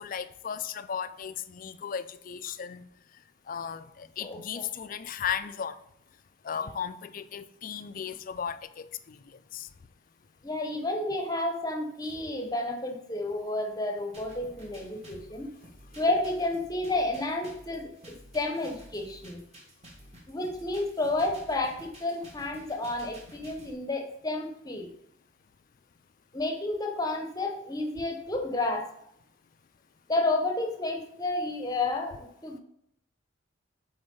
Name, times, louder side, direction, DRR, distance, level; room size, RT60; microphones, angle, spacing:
voice 1, 0.0-2.9 3.5-5.8 6.4-9.2 9.5-9.7, left 7 dB, 40° left, 12 dB, 0.4 m, -35 dB
voice 2, 4.2-4.6 10.4-15.5 16.0-19.4 20.3-24.9 26.3-28.9 30.1-32.6, left 2 dB, 20° left, 3 dB, 0.8 m, -31 dB
sound 1, 14.1-23.7, equal, 30° right, 1.4 m, -52 dB
7.7 x 4.4 x 3.7 m, 0.76 s
head